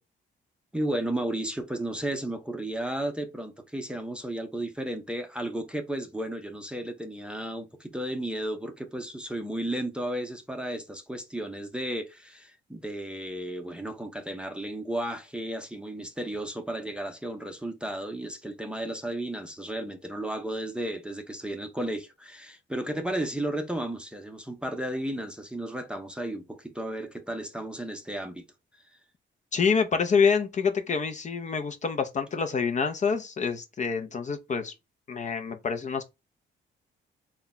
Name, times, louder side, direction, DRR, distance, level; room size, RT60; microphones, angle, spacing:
voice 1, 0.7-28.4, right 1 dB, 5° right, 0.6 m, -33 dB
voice 2, 29.5-34.7 35.1-36.0, left 5 dB, 35° left, 0.6 m, -27 dB
3.4 x 2.3 x 4.0 m
cardioid pair, 90°, 20 cm